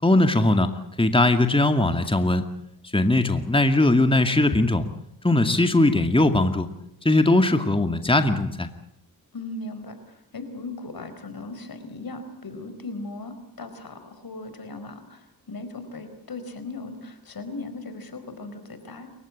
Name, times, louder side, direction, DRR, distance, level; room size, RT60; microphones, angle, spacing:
voice 1, 0.0-0.7 1.0-2.4 2.9-4.9 5.2-6.7 7.0-8.7, left 2 dB, 15° left, 8 dB, 2.3 m, -20 dB
voice 2, 9.3-19.1, left 2 dB, 65° left, 10 dB, 4.8 m, -38 dB
29.0 x 16.0 x 8.8 m, 0.74 s
cardioid pair, 50°, 38 cm